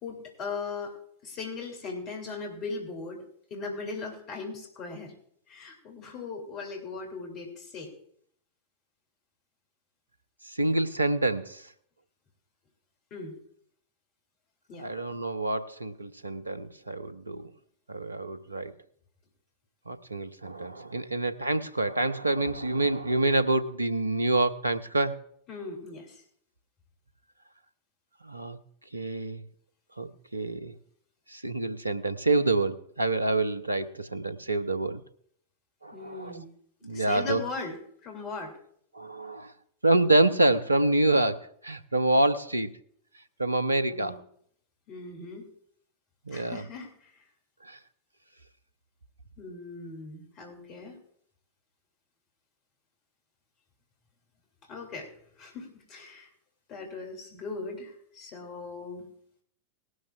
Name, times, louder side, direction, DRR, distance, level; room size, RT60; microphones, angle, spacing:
voice 1, 0.0-1.0 1.2-3.2 3.5-5.1 5.5-7.9 13.1-13.4 14.7-14.9 25.5-26.2 35.9-36.5 36.9-38.5 43.9-44.2 44.9-45.5 46.3-47.1 49.4-51.0 54.7-55.1 55.4-56.3 56.7-59.1, left 4 dB, 35° left, 2 dB, 2.6 m, -38 dB
voice 2, 10.5-11.7 14.8-17.4 17.9-18.7 19.9-25.2 28.2-28.6 28.9-29.4 30.0-30.7 31.3-35.0 35.8-36.4 36.8-37.4 38.9-39.5 39.8-42.7 43.4-44.2 46.3-46.6 47.6-47.8, right 2 dB, 85° right, 12 dB, 0.7 m, -27 dB
19.0 x 12.5 x 2.4 m, 0.66 s
figure-of-eight pair, 90°, 0 cm